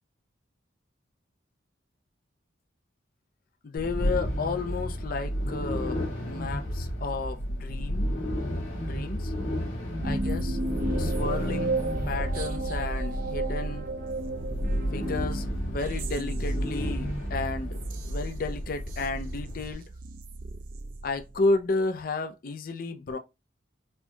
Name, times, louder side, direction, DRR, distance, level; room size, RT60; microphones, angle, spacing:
voice 1, 3.6-8.1 8.9-9.3 10.0-10.6 11.0-11.8 12.1-13.9 14.9-19.8 21.0-23.2, left 3 dB, 45° left, 0.4 m, -32 dB
sound 1, 3.8-19.7, equal, 85° left, 2.1 m, -32 dB
sound 2, 10.0-21.6, right 2 dB, 45° right, 0.4 m, -34 dB
4.3 x 2.6 x 2.2 m
head